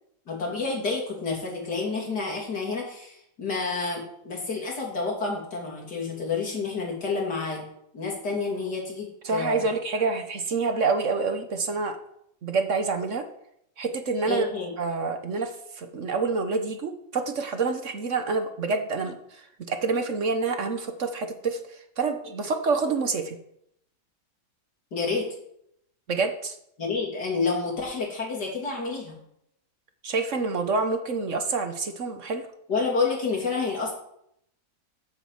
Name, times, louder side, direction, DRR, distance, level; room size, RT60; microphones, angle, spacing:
voice 1, 0.3-7.7 7.9-9.7 14.3-14.8 24.9-25.3 26.8-29.2 32.7-33.9, left 4 dB, 85° left, -1 dB, 3.5 m, -29 dB
voice 2, 9.2-12.0 12.4-13.3 13.8-14.5 14.8-23.4 26.1-26.6 30.0-32.4, right 4 dB, 50° right, 7 dB, 1.3 m, -27 dB
8.9 x 7.3 x 7.5 m, 0.74 s
omnidirectional pair, 1.7 m